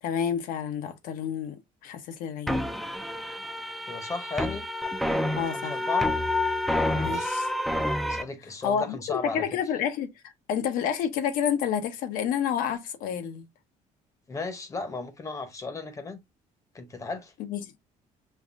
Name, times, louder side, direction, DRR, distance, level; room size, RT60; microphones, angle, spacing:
voice 1, 0.0-2.6 5.4-5.7 6.9-7.5 8.6-13.5 17.5-17.7, left 8 dB, 80° left, 0.8 m, -29 dB
sound 1, 2.5-8.2, left 1 dB, ahead, 0.4 m, -28 dB
voice 2, 3.9-4.7 5.5-6.1 6.8-7.4 8.1-9.4 14.3-16.2 16.7-17.3, left 4 dB, 20° left, 0.8 m, -35 dB
5.5 x 2.5 x 2.4 m
cardioid pair, 165°, 14 cm